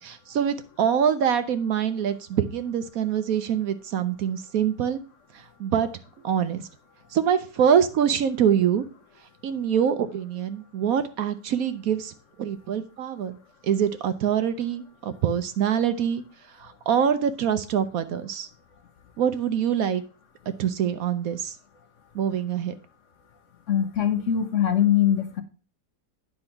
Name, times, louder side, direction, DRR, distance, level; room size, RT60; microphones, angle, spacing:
voice 1, 0.0-5.0 5.3-5.9 6.2-6.7 7.1-8.8 9.4-12.1 12.4-13.4 13.6-16.2 16.6-18.5 19.2-20.0 20.6-21.6 22.1-22.7, right 8 dB, 65° right, 11 dB, 1.0 m, -24 dB
voice 2, 23.7-25.4, left 10 dB, 55° left, 8 dB, 1.0 m, -22 dB
9.9 x 4.4 x 5.7 m, 0.37 s
omnidirectional pair, 1.8 m